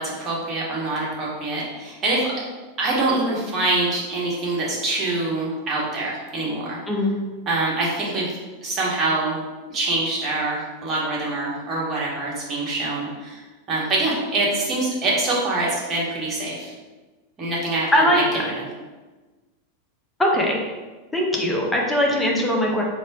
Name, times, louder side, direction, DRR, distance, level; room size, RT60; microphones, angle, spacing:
voice 1, 0.0-2.3 2.8-6.8 7.5-8.3 8.6-9.4 9.7-13.4 13.7-16.7 17.4-18.2 18.5-18.6, right 2 dB, 30° right, -5 dB, 1.4 m, -25 dB
voice 2, 6.9-7.2 17.9-18.2 20.2-20.6 21.1-22.8, equal, 10° left, -1 dB, 0.8 m, -20 dB
4.2 x 2.5 x 3.7 m, 1.2 s
figure-of-eight pair, 90°, 0 cm